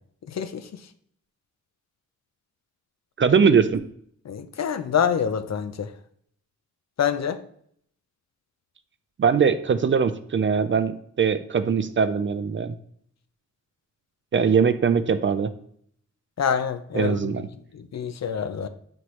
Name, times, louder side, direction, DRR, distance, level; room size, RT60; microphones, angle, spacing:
voice 1, 0.3-0.7 4.3-5.9 7.0-7.4 16.4-17.3 17.7-18.7, left 8 dB, 60° left, 10 dB, 0.6 m, -26 dB
voice 2, 3.2-3.8 9.2-12.8 14.3-15.5 16.9-17.5, right 6 dB, 40° right, 12 dB, 0.4 m, -21 dB
7.8 x 4.2 x 3.1 m, 0.66 s
wide cardioid pair, 140°, 31 cm